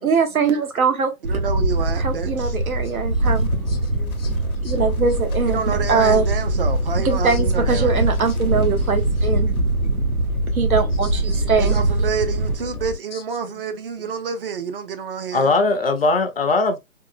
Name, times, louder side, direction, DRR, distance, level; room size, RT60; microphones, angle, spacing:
voice 1, 0.0-1.1 2.0-3.5 4.6-6.2 7.0-9.5 10.5-11.8, right 5 dB, 75° right, 1.1 m, -22 dB
voice 2, 1.2-2.6 5.5-8.1 9.8-10.0 11.3-15.5, right 6 dB, 40° right, 0.6 m, -29 dB
Wind, 1.2-12.5, right 2 dB, 90° right, 1.3 m, -22 dB
sound 1, 3.2-13.0, left 4 dB, 80° left, 0.7 m, -32 dB
voice 3, 3.9-4.4 4.6-4.7 15.3-16.8, left 3 dB, 45° left, 0.5 m, -21 dB
3.6 x 2.3 x 2.5 m
hypercardioid pair, 150°, 43 cm